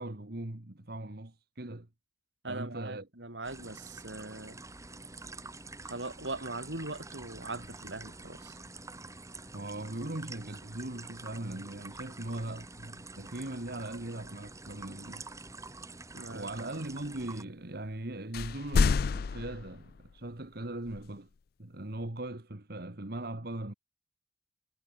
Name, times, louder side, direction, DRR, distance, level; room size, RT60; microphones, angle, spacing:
voice 1, 0.0-1.9 2.5-3.1 9.5-15.3 16.3-21.3 21.6-23.7, right 1 dB, 60° right, 1.8 m, -39 dB
voice 2, 2.4-4.6 5.8-8.6 16.1-16.5, right 2 dB, 85° right, 6.8 m, -40 dB
sound 1, 3.4-17.4, right 3 dB, 20° right, 2.6 m, -47 dB
sound 2, 18.3-20.0 20.9-21.0, left 4 dB, 55° left, 0.4 m, -28 dB
head